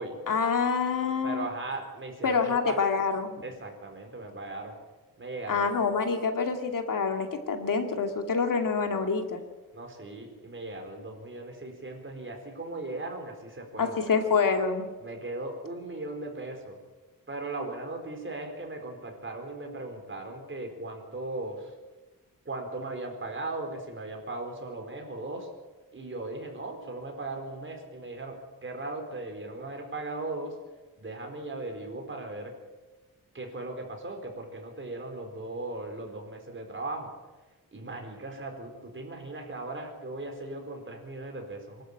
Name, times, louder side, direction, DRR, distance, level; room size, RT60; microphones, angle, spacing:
voice 1, 0.3-1.5 2.2-3.3 5.5-9.4 13.8-14.9, left 5 dB, 65° left, 5 dB, 2.4 m, -27 dB
voice 2, 1.2-2.8 3.4-4.8 5.2-5.8 9.7-14.1 15.0-16.8 17.3-21.8 22.4-25.5 25.9-30.5 31.0-32.5 33.3-37.1 37.7-41.8, right 2 dB, 35° right, 3 dB, 4.4 m, -38 dB
24.0 x 13.0 x 8.7 m, 1.2 s
wide cardioid pair, 125°, 35 cm